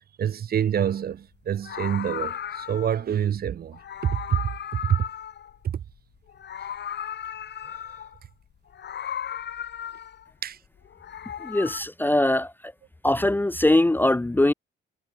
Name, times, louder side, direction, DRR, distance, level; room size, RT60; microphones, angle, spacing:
voice 1, 0.2-5.1 5.6-5.8 7.6-7.8 10.4-10.6, right 9 dB, 50° right, 0.8 m, -27 dB
Meow, 0.8-1.0 1.5-3.0 3.7-6.0 6.3-8.2 8.7-10.3 10.8-11.8, left 9 dB, 60° left, 3.9 m, -36 dB
voice 2, 11.4-12.7 13.0-14.5, left 1 dB, 10° left, 0.5 m, -22 dB
cardioid pair, 90°, 20 cm